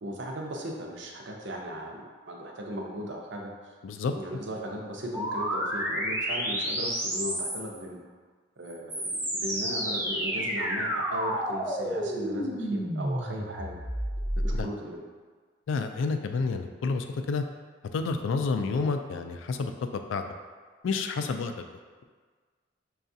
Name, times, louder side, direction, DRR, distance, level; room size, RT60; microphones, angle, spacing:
voice 1, 0.0-2.0 2.3-3.5 4.1-8.0 8.6-13.8 14.4-15.0, equal, 65° right, 0 dB, 0.6 m, -37 dB
voice 2, 3.8-4.1 14.5-14.7 15.7-17.4 17.9-20.2 20.8-21.7, left 4 dB, 75° left, 7 dB, 0.3 m, -29 dB
sound 1, 5.1-7.8 8.7-14.6, equal, 10° right, 0.5 m, -30 dB
5.6 x 2.4 x 2.6 m, 1.5 s
head